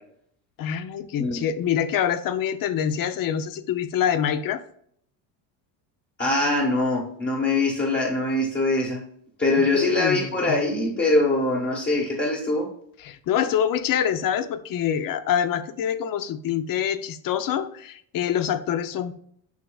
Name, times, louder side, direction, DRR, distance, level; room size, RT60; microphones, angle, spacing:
voice 1, 0.6-4.6 9.6-10.5 13.0-19.1, left 9 dB, 45° left, 12 dB, 0.7 m, -25 dB
voice 2, 6.2-9.0 9.4-12.7, left 2 dB, 20° left, -2 dB, 1.3 m, -23 dB
8.2 x 6.2 x 2.3 m, 0.67 s
cardioid pair, 135°, 48 cm